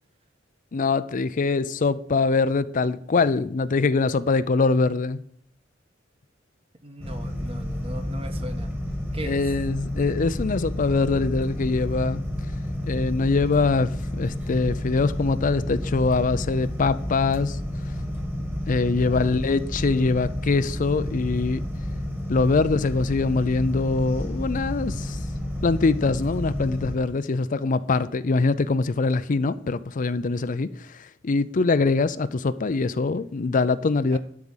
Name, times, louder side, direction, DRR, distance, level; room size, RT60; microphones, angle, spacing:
voice 1, 0.7-5.2 9.2-12.2 12.8-17.6 18.7-21.6 22.3-25.2 25.6-34.2, left 3 dB, 40° left, 0.5 m, -23 dB
voice 2, 6.8-8.7 9.1-9.5 18.9-19.4 34.1-34.2, equal, 30° right, 1.3 m, -39 dB
sound 1, 7.0-27.0, left 1 dB, 10° right, 1.7 m, -30 dB
12.0 x 4.9 x 7.2 m
head